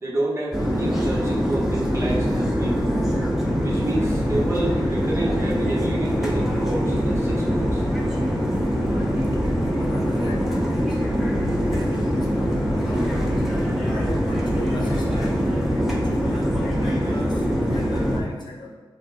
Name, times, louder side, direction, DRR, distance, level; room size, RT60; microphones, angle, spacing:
voice 1, 0.0-2.9 3.6-7.9, right 1 dB, 30° right, -5 dB, 1.1 m, -29 dB
sound 1, 0.5-18.2, equal, 5° right, 0.8 m, -23 dB
voice 2, 9.8-18.8, left 2 dB, 50° left, -2 dB, 0.9 m, -37 dB
5.8 x 2.2 x 4.1 m, 1.4 s
wide cardioid pair, 110°, 9 cm